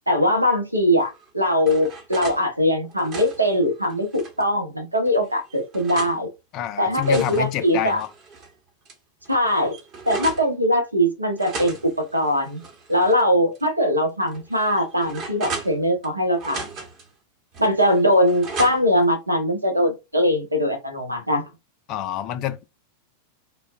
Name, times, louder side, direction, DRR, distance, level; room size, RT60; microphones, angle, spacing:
voice 1, 0.1-6.3 6.8-8.0 9.3-9.7 10.1-12.6 12.9-16.6 17.6-21.5, equal, 85° right, 1.1 m, -21 dB
sound 1, 1.1-2.4 2.8-4.5 5.1-6.2 6.7-8.5 8.9-9.0 9.2-10.5 11.4-13.2 13.5-13.7 14.3-16.1 16.4-17.1 17.5-19.0, right 3 dB, 35° right, 1.1 m, -36 dB
voice 2, 6.5-8.1 21.9-22.6, left 12 dB, 40° left, 0.4 m, -27 dB
3.8 x 2.4 x 2.5 m
figure-of-eight pair, 90°, 0 cm